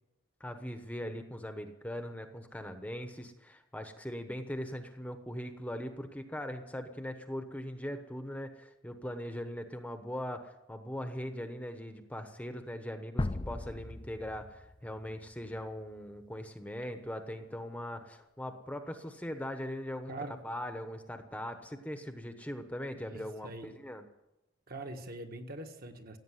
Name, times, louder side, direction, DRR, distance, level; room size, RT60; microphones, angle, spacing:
voice 1, 0.4-20.1 20.4-24.0, equal, 5° left, 7 dB, 1.0 m, -40 dB
sound 1, 13.2-16.1, left 2 dB, 25° left, 0.5 m, -38 dB
voice 2, 20.1-20.4 23.1-23.7 24.7-26.2, right 2 dB, 45° right, 5 dB, 1.6 m, -43 dB
16.5 x 8.6 x 9.9 m, 0.94 s
head